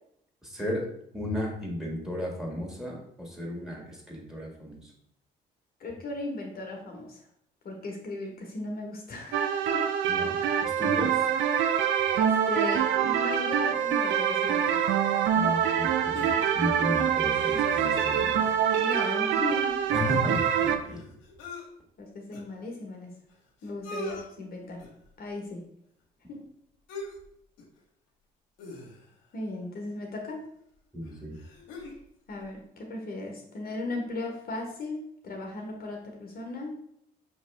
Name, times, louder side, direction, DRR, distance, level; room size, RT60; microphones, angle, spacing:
voice 1, 0.4-0.9 1.1-4.8 10.1-11.2 15.3-18.4 19.9-21.0 30.9-31.3, left 1 dB, 5° right, -1 dB, 1.8 m, -34 dB
voice 2, 5.8-7.2 7.6-9.9 10.3-10.4 12.1-14.8 18.7-19.9 22.0-23.1 23.6-24.8 25.2-25.6 26.3-26.5 29.3-30.5 32.3-36.8, left 2 dB, 50° left, 1 dB, 1.1 m, -36 dB
sound 1, 9.3-20.8, right 8 dB, 75° right, 0.5 m, -25 dB
sound 2, 16.1-16.8 17.3-18.7 19.1-19.2 19.4-21.6 22.3-22.4 23.3-23.4 23.6-24.2 24.8-25.1 26.9-27.3 27.6-27.8 28.6-29.3 30.3-30.4 31.0-32.0 32.4-32.5, left 1 dB, 90° left, 0.9 m, -42 dB
5.1 x 3.0 x 3.3 m, 0.72 s
supercardioid pair, 65°, 19 cm